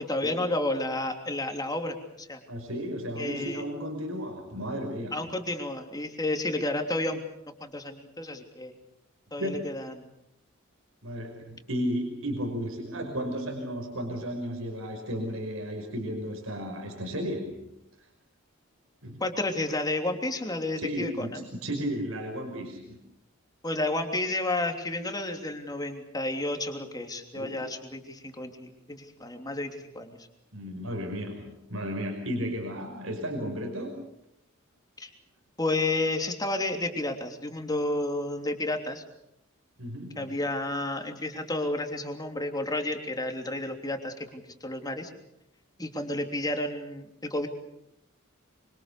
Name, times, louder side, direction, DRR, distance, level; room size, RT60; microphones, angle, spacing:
voice 1, 0.0-2.4 3.2-3.6 5.1-7.2 7.6-8.7 9.3-9.9 19.2-21.4 23.6-30.2 35.0-35.1 35.6-39.0 40.2-45.1 45.8-47.5, left 2 dB, 20° left, 5 dB, 3.1 m, -31 dB
voice 2, 2.5-5.2 9.4-9.6 11.0-17.7 19.0-19.2 20.8-23.0 27.3-27.6 30.5-34.0 39.8-40.4, equal, 75° right, 3 dB, 5.5 m, -34 dB
25.5 x 25.0 x 6.8 m, 0.80 s
head